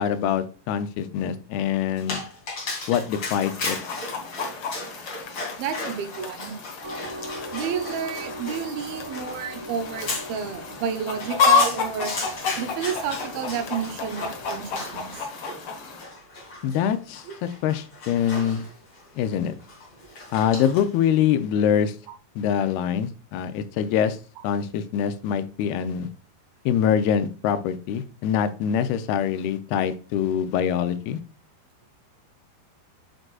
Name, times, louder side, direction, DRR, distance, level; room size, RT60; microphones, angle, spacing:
voice 1, 0.0-2.2 2.9-3.8 16.6-18.6 19.2-19.5 20.3-22.0 22.4-24.2 24.4-26.1 26.7-31.2, left 8 dB, 85° left, 11 dB, 2.6 m, -24 dB
Dog, 2.0-21.0, left 2 dB, 35° left, 2.6 m, -36 dB
Chicken rooster, 3.1-16.0, left 5 dB, 70° left, 1.3 m, -30 dB
voice 2, 5.6-6.6 7.5-12.1 12.6-15.3 17.3-17.4, right 7 dB, 75° right, 7 dB, 2.8 m, -31 dB
Train, 6.8-15.2, equal, 45° right, 2.0 m, -40 dB
7.7 x 6.1 x 2.3 m, 0.36 s
omnidirectional pair, 4.5 m